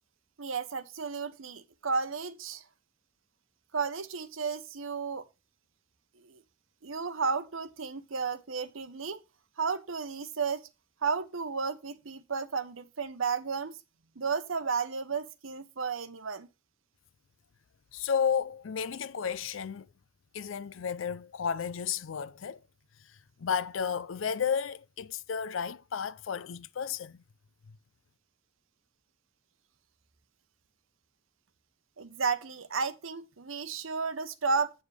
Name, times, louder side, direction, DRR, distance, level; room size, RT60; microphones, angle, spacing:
voice 1, 0.4-2.6 3.7-5.3 6.2-6.4 6.8-9.2 9.6-10.7 11.0-13.8 14.2-16.5 32.0-34.7, right 5 dB, 80° right, 0.9 m, -33 dB
voice 2, 17.9-19.9 20.3-22.6 23.4-27.2, left 7 dB, 70° left, 0.4 m, -32 dB
8.3 x 7.2 x 3.3 m
head